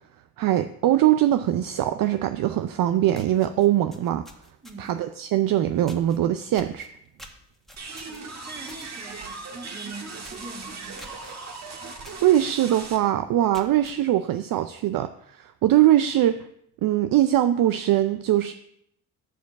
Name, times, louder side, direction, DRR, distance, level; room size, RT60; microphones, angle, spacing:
voice 1, 0.4-4.2 4.8-6.9 12.2-16.4 16.8-18.5, right 12 dB, 60° right, 10 dB, 0.5 m, -22 dB
sound 1, 2.7-2.8 3.1-5.0 5.9-6.2 6.5-8.9 9.2-9.5 9.8-9.9 10.2-10.5 11.0-11.3 12.0-12.3 12.7-12.8 13.3-14.0, equal, ahead, 1.5 m, -47 dB
voice 2, 4.6-5.0 8.1-11.2, right 3 dB, 25° right, 2 dB, 2.1 m, -43 dB
sound 2, 7.8-13.0, right 4 dB, 45° right, 1.5 m, -38 dB
7.1 x 4.6 x 7.0 m, 0.74 s
supercardioid pair, 65°, 38 cm